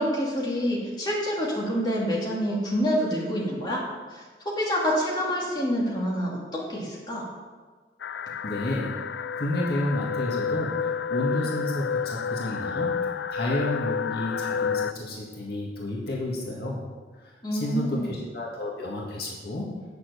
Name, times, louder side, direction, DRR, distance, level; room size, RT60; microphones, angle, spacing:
voice 1, 0.0-3.8 4.1-7.3 17.4-18.1, equal, 25° left, -5 dB, 2.5 m, -27 dB
sound 1, 8.0-14.9, left 6 dB, 80° left, 0.4 m, -30 dB
voice 2, 8.4-9.0 9.4-16.9 17.2-19.8, left 1 dB, 60° left, -4 dB, 2.0 m, -31 dB
8.9 x 7.0 x 6.9 m, 1.4 s
head